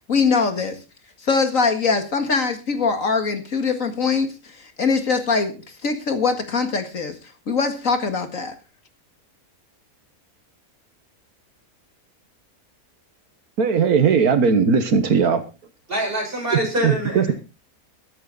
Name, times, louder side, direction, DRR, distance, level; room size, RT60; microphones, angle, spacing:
voice 1, 0.1-0.8 1.2-7.2 7.5-8.5, left 4 dB, 65° left, 2.3 m, -22 dB
voice 2, 13.6-15.4 16.5-17.3, right 6 dB, 85° right, 1.9 m, -18 dB
voice 3, 15.9-17.3, right 1 dB, 35° right, 7.0 m, -25 dB
14.5 x 12.5 x 4.0 m
omnidirectional pair, 1.5 m